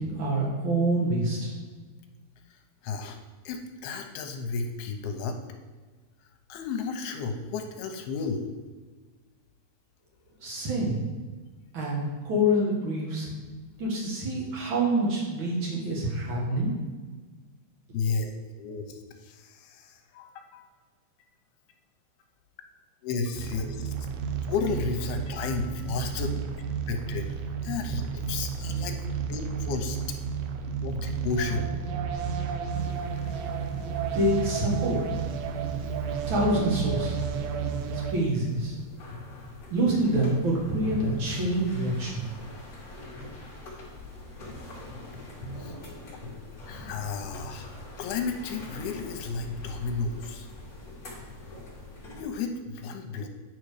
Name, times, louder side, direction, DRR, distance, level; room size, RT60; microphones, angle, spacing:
voice 1, 0.0-1.5 10.4-11.0 11.7-13.3 13.8-16.7 34.1-35.0 36.3-37.2 37.9-38.8 39.7-42.2, right 1 dB, 60° right, -3 dB, 1.3 m, -26 dB
voice 2, 2.5-3.2 3.4-5.4 6.5-8.5 17.9-18.3 18.6-20.7 23.0-23.9 24.5-27.4 27.6-29.0 29.3-30.0 30.8-31.7 37.7-37.8 45.6-45.7 46.7-47.7 48.0-50.5 52.2-53.3, left 4 dB, 75° left, 4 dB, 2.6 m, -33 dB
sound 1, 23.3-38.1, right 6 dB, 80° right, 2.3 m, -32 dB
sound 2, 32.7-52.2, left 1 dB, 35° left, 1.5 m, -43 dB
9.3 x 4.9 x 4.9 m, 1.4 s
omnidirectional pair, 4.8 m